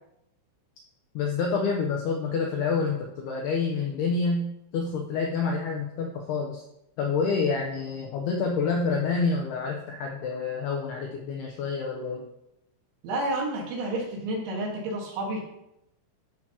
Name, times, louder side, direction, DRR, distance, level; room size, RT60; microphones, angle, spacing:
voice 1, 1.2-6.6 7.0-12.3, left 4 dB, 90° left, 0 dB, 2.3 m, -28 dB
voice 2, 13.0-15.4, right 1 dB, 70° right, -1 dB, 3.9 m, -30 dB
12.5 x 6.0 x 2.9 m, 0.81 s
omnidirectional pair, 5.7 m